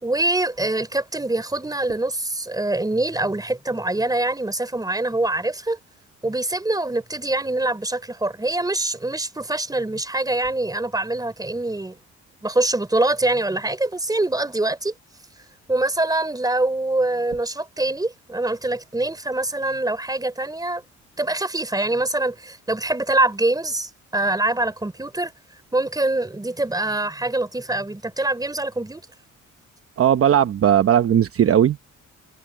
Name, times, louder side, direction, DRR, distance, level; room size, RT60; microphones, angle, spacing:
voice 1, 0.0-5.8 6.2-12.0 12.4-14.9 15.7-20.8 21.2-25.3 25.7-29.0, right 2 dB, 10° right, 3.8 m, -24 dB
voice 2, 30.0-31.9, right 9 dB, 50° right, 0.9 m, -17 dB
cardioid pair, 90°, 30 cm